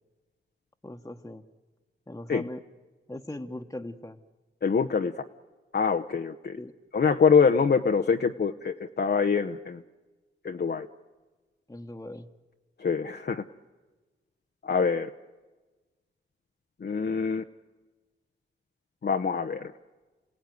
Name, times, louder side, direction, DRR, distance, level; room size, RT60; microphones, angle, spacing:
voice 1, 0.8-1.4 2.1-2.6 3.1-4.2 6.6-6.7 11.7-12.3, left 1 dB, 15° left, 3 dB, 1.3 m, -39 dB
voice 2, 4.6-5.3 5.7-6.6 6.9-9.8 10.4-10.9 12.8-13.4 14.6-15.1 16.8-17.4 19.0-19.7, left 5 dB, 50° left, 5 dB, 0.9 m, -25 dB
28.5 x 17.0 x 9.5 m, 1.2 s
cardioid pair, 50°, 21 cm